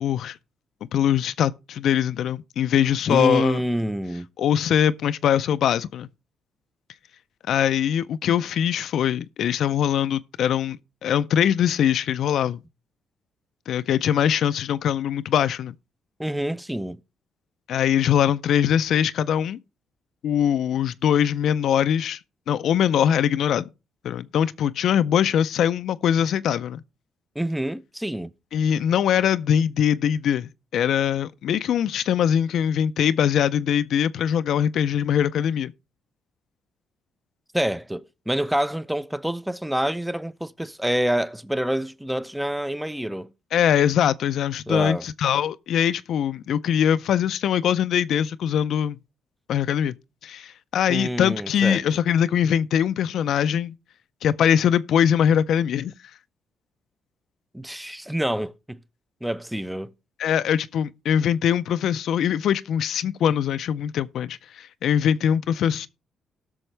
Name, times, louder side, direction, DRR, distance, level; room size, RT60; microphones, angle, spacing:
voice 1, 0.0-0.4 0.9-3.6 4.4-6.1 7.5-10.8 11.0-12.6 13.7-15.7 17.7-19.6 20.2-22.2 22.5-23.7 24.0-26.8 28.5-35.7 43.5-49.0 49.5-49.9 50.2-53.7 54.2-55.9 60.2-65.9, left 9 dB, 70° left, 0.5 m, -22 dB
voice 2, 3.1-4.3 16.2-17.0 27.4-28.3 37.5-43.3 44.7-45.1 50.9-51.8 57.5-58.8 59.2-59.9, right 1 dB, 5° right, 0.6 m, -27 dB
18.0 x 6.2 x 3.3 m
cardioid pair, 90°, 0 cm